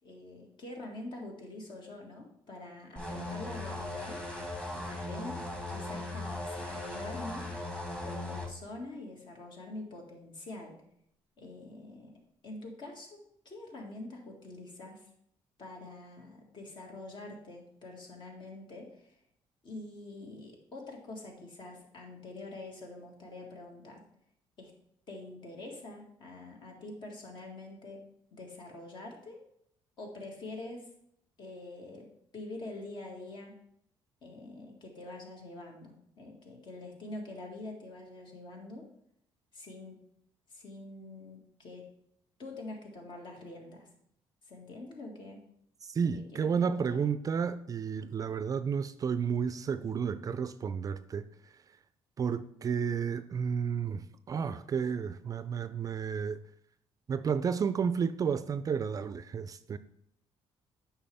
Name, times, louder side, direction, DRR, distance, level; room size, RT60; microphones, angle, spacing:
voice 1, 0.0-5.4 5.7-7.5 8.0-10.7 11.4-12.1 12.4-13.2 13.5-15.0 15.6-19.2 19.6-24.0 24.6-24.7 25.1-28.0 28.3-29.4 30.0-30.9 31.4-32.1 32.3-33.5 34.2-38.9 39.5-40.0 40.5-41.9 42.4-43.9 44.5-45.4 46.0-47.0, left 2 dB, 55° left, 2.0 m, -45 dB
sound 1, 3.0-8.5, left 2 dB, 10° left, 1.5 m, -38 dB
voice 2, 45.8-51.3 52.2-56.4 57.1-59.8, right 6 dB, 35° right, 0.4 m, -32 dB
8.6 x 5.7 x 3.5 m
cardioid pair, 105°, 10 cm